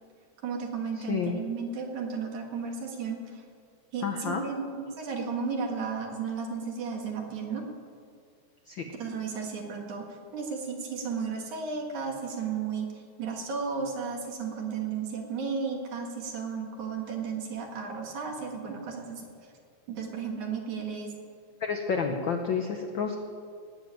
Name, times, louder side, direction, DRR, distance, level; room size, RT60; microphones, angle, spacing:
voice 1, 0.4-3.4 3.9-7.7 8.9-19.3 19.9-21.1, right 5 dB, 75° right, 2 dB, 3.3 m, -34 dB
voice 2, 1.1-1.4 4.0-4.4 8.7-8.8 21.6-23.2, left 6 dB, 80° left, 4 dB, 1.1 m, -30 dB
18.5 x 7.3 x 9.0 m, 2.2 s
omnidirectional pair, 3.4 m